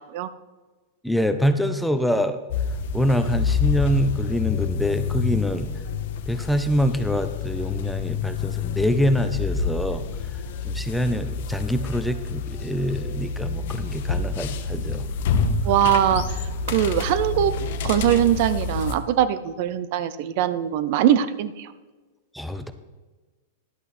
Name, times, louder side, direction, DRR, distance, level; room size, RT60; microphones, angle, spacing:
voice 1, 1.0-2.4 2.9-5.7 6.3-15.1 22.3-22.7, equal, ahead, 9 dB, 0.5 m, -25 dB
sound 1, 2.5-19.0, left 5 dB, 60° left, 1.0 m, -28 dB
voice 2, 15.6-17.5 17.8-21.7, right 11 dB, 50° right, 14 dB, 0.6 m, -22 dB
11.0 x 8.1 x 4.2 m, 1.3 s
supercardioid pair, 150°, 0 cm